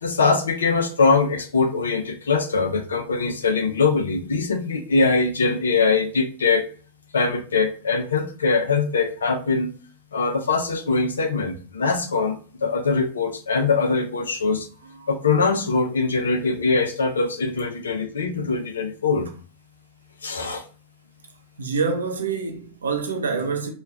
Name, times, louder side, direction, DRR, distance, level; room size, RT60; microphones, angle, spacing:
voice 1, 0.0-6.6 7.1-9.7 10.1-14.7 15.1-19.3 20.2-20.6, left 4 dB, 80° left, 0.6 m, -22 dB
voice 2, 21.6-23.7, right 5 dB, 80° right, 0.6 m, -26 dB
3.1 x 2.3 x 3.4 m
hypercardioid pair, 95°, 0 cm